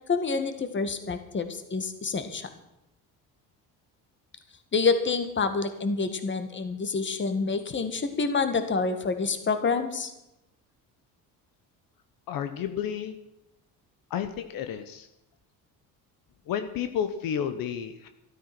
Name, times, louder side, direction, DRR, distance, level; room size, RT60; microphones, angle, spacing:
voice 1, 0.1-2.5 4.7-10.1, left 4 dB, 30° left, 8 dB, 1.9 m, -27 dB
voice 2, 12.3-13.2 14.1-15.1 16.5-18.1, left 8 dB, 70° left, 9 dB, 1.1 m, -31 dB
13.0 x 13.0 x 6.1 m, 0.87 s
cardioid pair, 115°, 37 cm